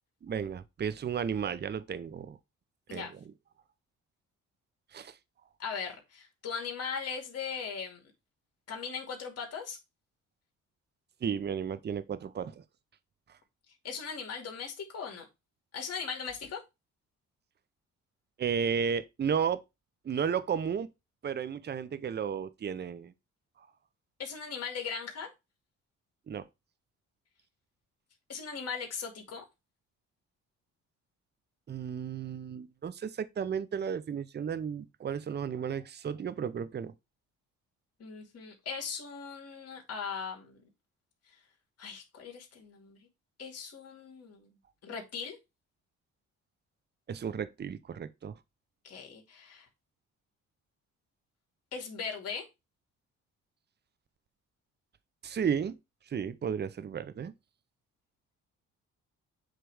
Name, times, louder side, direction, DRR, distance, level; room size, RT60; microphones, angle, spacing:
voice 1, 0.2-2.4 2.9-3.1 4.9-5.1 11.2-12.6 18.4-19.6 20.0-20.9 21.2-23.1 26.3-26.5 31.7-36.9 47.1-48.3 55.2-55.8 56.1-57.3, right 7 dB, 35° right, 0.7 m, -33 dB
voice 2, 5.6-8.0 8.7-9.8 13.8-15.3 15.7-16.6 24.2-25.3 28.3-29.4 38.0-40.6 41.8-43.0 43.4-44.5 44.8-45.4 48.8-49.7 51.7-52.4, left 6 dB, 55° left, 2.6 m, -39 dB
7.9 x 3.3 x 4.8 m
cardioid pair, 90°, 30 cm